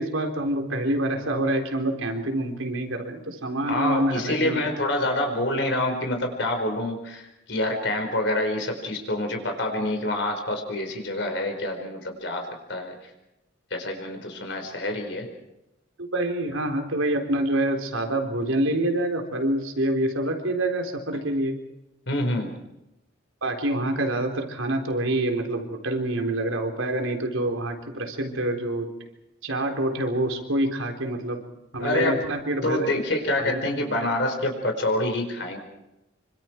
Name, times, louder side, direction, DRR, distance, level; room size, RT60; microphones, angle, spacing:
voice 1, 0.0-4.6 16.0-21.6 23.4-28.9 29.4-31.4 31.7-32.9 33.4-33.6, right 1 dB, 85° right, 4 dB, 3.9 m, -26 dB
voice 2, 3.7-12.4 12.7-13.1 13.7-15.3 22.1-22.5 31.8-32.2 32.6-35.6, left 1 dB, 60° left, 4 dB, 4.7 m, -27 dB
26.5 x 25.5 x 4.6 m, 0.94 s
head